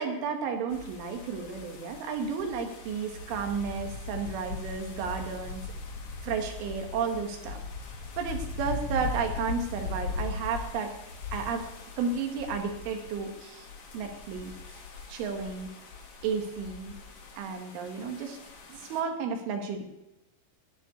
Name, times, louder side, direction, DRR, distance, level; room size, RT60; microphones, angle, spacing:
voice 1, 0.0-5.6 6.2-7.6 8.2-10.9 11.3-11.7 12.0-13.7 13.9-14.5 15.1-15.7 16.2-16.9 17.4-18.4 18.7-19.8, right 5 dB, 75° right, 4 dB, 4.1 m, -32 dB
sound 1, 0.7-19.0, left 3 dB, 50° left, 2.3 m, -40 dB
13.5 x 6.5 x 9.5 m, 0.89 s
omnidirectional pair, 5.6 m